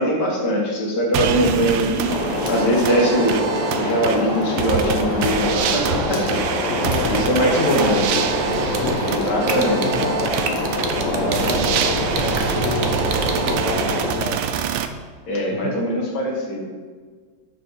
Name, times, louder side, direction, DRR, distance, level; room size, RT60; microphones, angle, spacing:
voice 1, 0.0-2.2 2.5-3.4 3.8-6.4 7.1-8.0 9.0-10.1 11.1-11.8 15.3-16.7, equal, 60° left, -2 dB, 2.1 m, -22 dB
sound 1, 1.1-14.9, right 8 dB, 85° right, 1.4 m, -26 dB
sound 2, 2.1-14.1, left 2 dB, 25° left, 1.1 m, -25 dB
voice 2, 6.7-14.5 15.5-16.0, left 5 dB, 90° left, 2 dB, 0.6 m, -30 dB
sound 3, 8.5-13.5, right 6 dB, 55° right, 0.8 m, -27 dB
6.6 x 5.5 x 5.4 m, 1.5 s
omnidirectional pair, 2.1 m